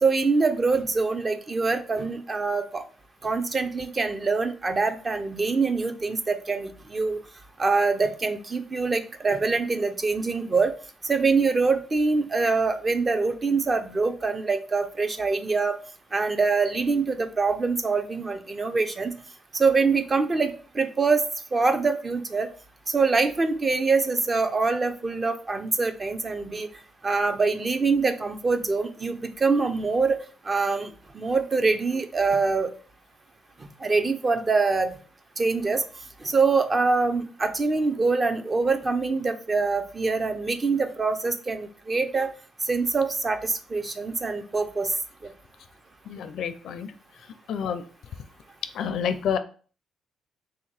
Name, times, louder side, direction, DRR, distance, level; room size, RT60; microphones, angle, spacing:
voice 1, 0.0-2.8 3.2-7.2 7.6-10.7 11.0-15.8 16.1-19.1 19.5-21.2 21.5-22.5 22.9-26.7 27.0-30.2 30.4-32.7 33.6-34.9 35.4-35.8 36.2-42.3 42.6-44.9 45.2-45.3, right 4 dB, 30° right, 7 dB, 0.6 m, -24 dB
voice 2, 46.1-46.9 47.5-47.8 48.7-49.4, left 7 dB, 70° left, 11 dB, 0.4 m, -28 dB
3.5 x 2.8 x 4.7 m, 0.40 s
cardioid pair, 90°, 0 cm